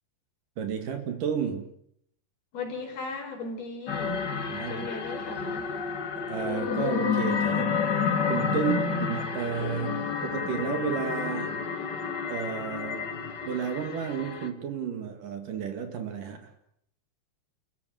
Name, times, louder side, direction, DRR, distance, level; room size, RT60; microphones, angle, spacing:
voice 1, 0.6-1.7 4.5-4.9 6.1-8.7 9.1-11.7 12.3-13.1 13.4-16.5, right 7 dB, 55° right, 7 dB, 3.3 m, -32 dB
voice 2, 2.5-4.3 4.7-5.7 8.5-9.1, left 1 dB, 65° left, 2 dB, 6.2 m, -35 dB
sound 1, 3.9-14.5, left 6 dB, 45° left, 1.4 m, -30 dB
30.0 x 14.5 x 9.2 m, 0.73 s
omnidirectional pair, 4.8 m